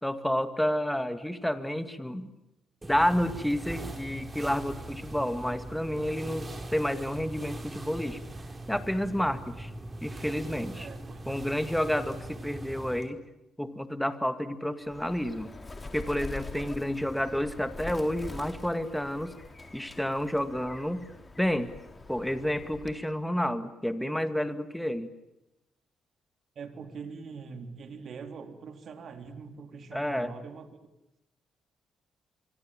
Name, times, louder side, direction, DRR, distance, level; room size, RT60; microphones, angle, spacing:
voice 1, 0.0-2.3 2.8-8.2 8.7-9.7 10.0-10.9 11.3-13.2 13.6-15.5 15.9-19.4 19.7-21.1 21.4-21.7 22.1-25.1 29.9-30.3, equal, 5° left, 10 dB, 2.1 m, -30 dB
sound 1, 2.8-13.1, right 1 dB, 25° right, 4.9 m, -41 dB
voice 2, 10.7-11.6 16.5-16.9 26.6-30.7, right 5 dB, 55° right, 7 dB, 3.6 m, -43 dB
Bird, 14.8-23.1, left 2 dB, 25° left, 4.0 m, -44 dB
25.0 x 25.0 x 9.0 m, 0.92 s
cardioid pair, 90°, 0 cm